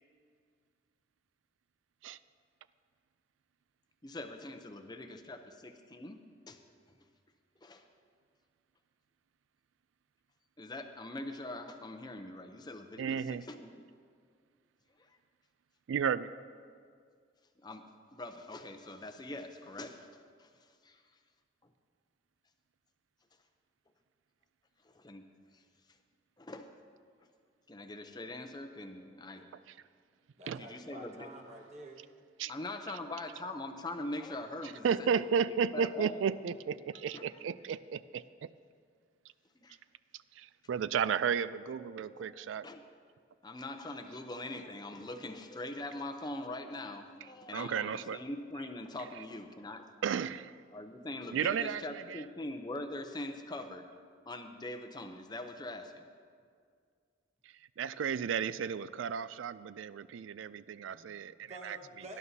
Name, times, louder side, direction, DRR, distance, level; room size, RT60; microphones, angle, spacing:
voice 1, 4.0-6.2 6.5-6.6 7.6-7.8 10.6-13.1 13.5-13.8 15.0-15.1 17.6-17.8 18.1-20.1 20.4-20.5 20.8-21.0 24.8-25.2 25.5-25.6 26.4-26.7 27.7-29.5 30.6-31.3 32.5-34.9 35.1-35.2 35.7-36.2 37.1-37.2 39.6-39.8 41.8-42.8 43.4-49.9 50.7-53.9 54.3-56.1, left 2 dB, 20° left, 6 dB, 0.6 m, -42 dB
voice 2, 13.0-13.4 15.9-16.3 30.5-30.6 32.4-32.5 34.8-38.5 40.3-42.7 47.5-48.2 50.0-50.6 51.3-52.2 57.4-61.8, right 7 dB, 85° right, 16 dB, 0.3 m, -33 dB
voice 3, 30.4-32.0 60.9-61.1 61.5-62.2, right 1 dB, 35° right, 0 dB, 1.3 m, -49 dB
18.0 x 11.0 x 2.8 m, 2.1 s
head